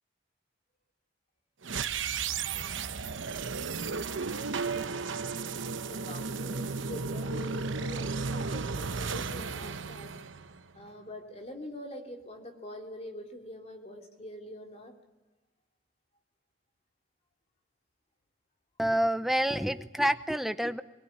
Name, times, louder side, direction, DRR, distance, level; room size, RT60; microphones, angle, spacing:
sound 1, 1.6-10.8, right 4 dB, 85° right, 1.0 m, -34 dB
voice 1, 2.5-10.1 10.7-14.9, left 1 dB, 35° left, 3 dB, 3.3 m, -46 dB
voice 2, 18.8-20.8, equal, ahead, 11 dB, 0.8 m, -28 dB
22.5 x 20.5 x 9.8 m, 1.1 s
head